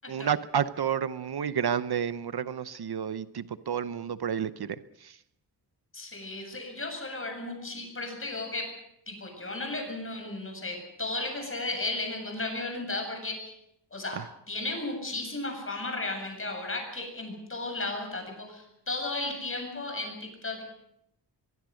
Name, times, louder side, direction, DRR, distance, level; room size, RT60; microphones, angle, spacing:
voice 1, 0.1-4.7 5.0-5.1 14.1-14.2, right 8 dB, 60° right, 0.9 m, -30 dB
voice 2, 5.9-8.7 9.1-13.5 13.9-14.2 14.5-20.6, left 2 dB, 30° left, 7.7 m, -34 dB
23.5 x 23.0 x 6.4 m
wide cardioid pair, 150°, 44 cm